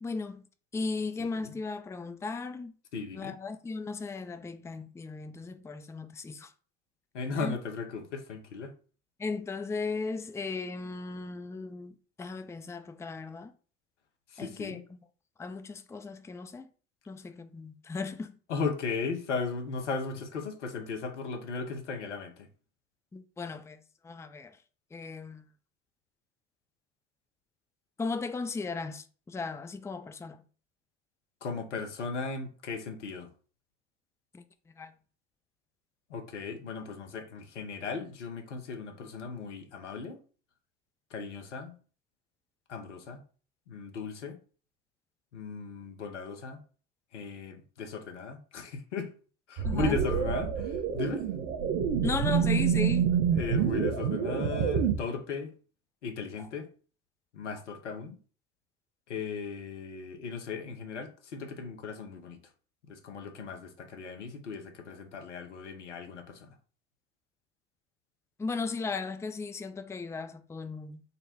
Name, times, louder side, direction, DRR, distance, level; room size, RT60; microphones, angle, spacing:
voice 1, 0.0-0.4 0.7-2.7 3.1-6.5 7.4-7.6 9.2-13.5 14.4-15.0 15.4-16.7 17.1-18.4 23.1-23.8 24.0-24.6 24.9-25.4 28.0-30.4 34.3-34.4 34.8-34.9 49.6-50.0 52.0-53.1 68.4-71.0, left 4 dB, 10° left, 0.4 m, -36 dB
voice 2, 2.9-3.4 7.1-8.7 14.3-14.8 18.5-22.5 31.4-33.3 36.1-40.2 41.1-41.7 42.7-43.2 43.7-44.4 45.3-46.6 47.1-49.1 49.5-51.2 53.3-55.5 56.0-56.7 57.3-58.2 59.1-62.4 62.9-66.5, left 5 dB, 90° left, 0.8 m, -36 dB
sound 1, 49.6-54.9, right 8 dB, 65° right, 1.0 m, -27 dB
4.0 x 2.2 x 4.2 m
hypercardioid pair, 65°, 34 cm